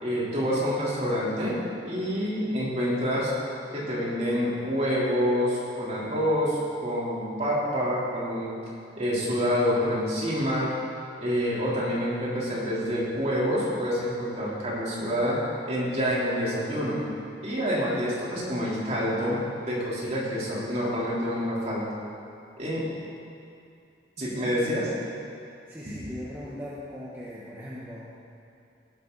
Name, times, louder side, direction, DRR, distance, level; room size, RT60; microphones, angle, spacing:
voice 1, 0.0-3.3 3.7-8.6 9.0-10.7 11.2-15.4 15.7-17.0 17.4-21.8 22.6-22.8 24.2-24.9 25.9-26.0, equal, 40° right, -7 dB, 3.7 m, -27 dB
voice 2, 24.2-24.7 25.0-25.2 25.7-28.1, equal, 15° right, -7 dB, 1.3 m, -40 dB
18.0 x 12.0 x 4.1 m, 2.5 s
head